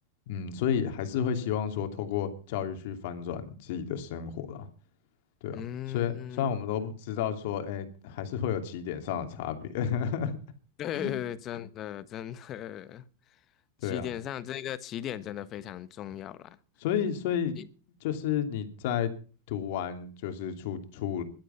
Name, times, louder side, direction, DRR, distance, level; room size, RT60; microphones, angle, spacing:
voice 1, 0.3-4.7 5.4-5.6 5.9-10.4 10.9-11.1 13.8-14.1 16.8-17.6 18.0-19.1 19.5-21.2, left 8 dB, 65° left, 2.8 m, -31 dB
voice 2, 5.5-6.5 10.8-13.0 13.8-16.6 17.6-17.7, left 11 dB, 40° left, 1.3 m, -37 dB
16.5 x 12.0 x 5.8 m
hypercardioid pair, 95°, 0 cm